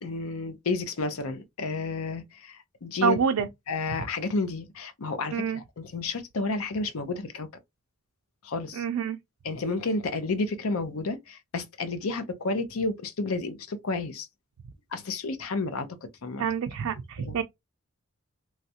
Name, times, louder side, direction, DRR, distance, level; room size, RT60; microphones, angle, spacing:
voice 1, 0.0-3.2 3.7-7.5 8.4-8.8 9.4-14.3 14.9-15.9 16.2-16.5 17.2-17.3, left 3 dB, 85° left, 0.6 m, -31 dB
voice 2, 3.0-3.5 5.3-5.6 8.7-9.2 16.4-17.4, right 7 dB, 80° right, 0.4 m, -27 dB
3.1 x 2.4 x 2.7 m
head